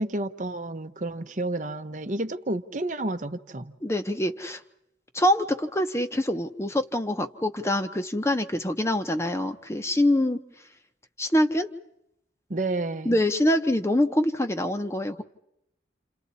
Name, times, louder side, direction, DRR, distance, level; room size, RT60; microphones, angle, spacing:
voice 1, 0.0-3.8 12.5-13.2, right 2 dB, 45° right, 0.9 m, -30 dB
voice 2, 3.8-4.6 5.1-10.4 11.2-11.7 13.0-15.2, left 1 dB, 15° left, 0.9 m, -25 dB
29.0 x 28.0 x 4.2 m
head